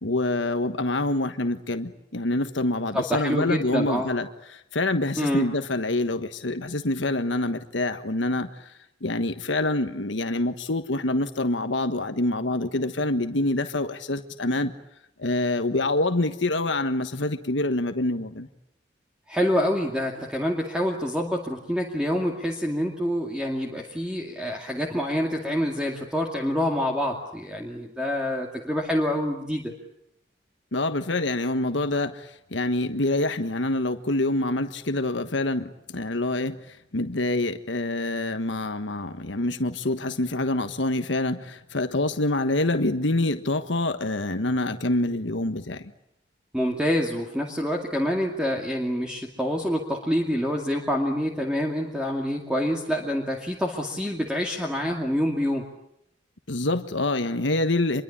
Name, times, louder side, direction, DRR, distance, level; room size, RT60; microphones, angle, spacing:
voice 1, 0.0-8.7 9.0-14.7 15.2-18.5 30.7-45.9 56.5-58.0, left 2 dB, 80° left, 8 dB, 1.4 m, -26 dB
voice 2, 2.9-4.1 5.2-5.5 19.3-29.7 46.5-55.6, equal, 5° right, 0 dB, 2.4 m, -26 dB
26.0 x 22.5 x 8.7 m, 0.79 s
head